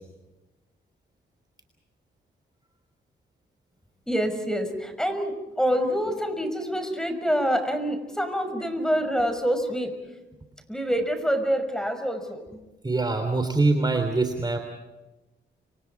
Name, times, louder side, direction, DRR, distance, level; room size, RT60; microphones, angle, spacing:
voice 1, 4.1-9.9 10.7-12.7, equal, 5° left, 8 dB, 5.9 m, -26 dB
voice 2, 12.8-14.6, right 3 dB, 20° right, 6 dB, 3.2 m, -23 dB
29.5 x 26.5 x 4.7 m, 1.0 s
cardioid pair, 80°, 20 cm